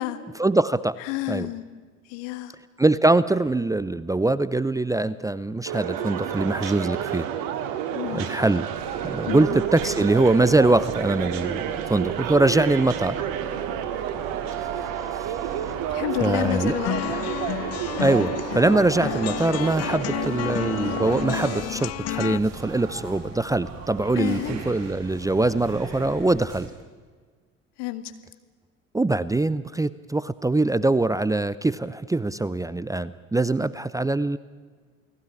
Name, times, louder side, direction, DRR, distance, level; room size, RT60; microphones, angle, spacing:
voice 1, 0.4-1.0 1.3-1.5 2.8-7.3 8.1-8.7 9.0-13.2 15.2-15.4 16.2-16.8 17.1-17.2 18.0-26.7 28.9-34.4, right 2 dB, 10° right, 18 dB, 0.7 m, -23 dB
voice 2, 1.0-1.6 2.1-2.5 7.9-8.3 9.3-9.6 15.9-16.9 24.2-24.6 27.8-28.1, left 15 dB, 60° left, 10 dB, 2.1 m, -29 dB
sound 1, 5.7-21.6, right 9 dB, 60° right, 2.2 m, -30 dB
sound 2, 8.7-26.7, right 5 dB, 40° right, 7.9 m, -40 dB
sound 3, 16.4-22.4, left 16 dB, 40° left, 0.7 m, -30 dB
29.0 x 19.0 x 9.9 m, 1.5 s
figure-of-eight pair, 60°, 38 cm